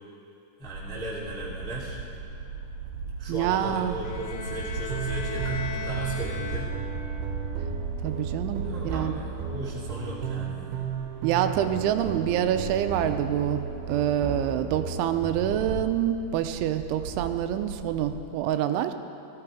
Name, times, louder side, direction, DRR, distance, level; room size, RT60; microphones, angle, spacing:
voice 1, 0.6-2.0 3.2-6.7 8.6-10.8, right 1 dB, 5° left, -6 dB, 0.8 m, -37 dB
Water Lapping Dock, 0.6-18.2, right 4 dB, 40° right, 2.7 m, -37 dB
voice 2, 3.3-4.0 8.0-9.2 11.2-13.6 13.9-18.9, right 10 dB, 85° right, 8 dB, 3.0 m, -26 dB
Bowed string instrument, 4.0-7.2, left 5 dB, 80° left, 1.8 m, -38 dB
sound 1, 4.9-15.6, right 6 dB, 70° right, 2.8 m, -35 dB
18.0 x 14.5 x 5.0 m, 2.7 s
omnidirectional pair, 5.4 m